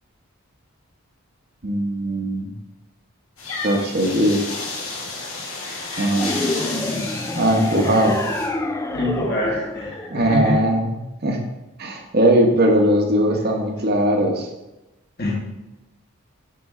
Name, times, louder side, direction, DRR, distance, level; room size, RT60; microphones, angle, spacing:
voice 1, 1.6-2.5 3.6-4.4 6.0-6.3 7.3-8.2 10.1-10.9 11.2-11.4 11.8-14.5, right 1 dB, 45° right, 2 dB, 1.1 m, -19 dB
sound 1, 3.4-8.5, left 3 dB, 70° left, 2.2 m, -31 dB
sound 2, 6.1-10.7, left 2 dB, 15° left, 0.4 m, -27 dB
voice 2, 8.9-10.6 15.2-15.3, left 1 dB, 45° left, -4 dB, 1.9 m, -24 dB
8.6 x 6.1 x 3.7 m, 0.99 s
head